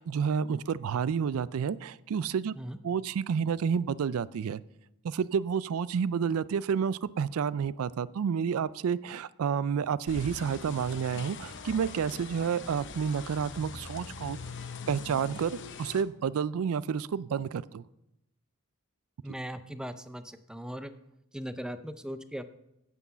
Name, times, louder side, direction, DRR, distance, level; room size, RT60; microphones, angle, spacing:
voice 1, 0.0-2.5 2.8-4.6 5.0-14.4 14.9-17.8, right 7 dB, 70° right, 19 dB, 0.4 m, -30 dB
sound 1, 10.1-16.0, left 5 dB, 55° left, 0.7 m, -42 dB
voice 2, 19.2-20.9 21.3-22.5, equal, 5° right, 11 dB, 0.5 m, -39 dB
9.5 x 8.4 x 5.6 m, 0.83 s
head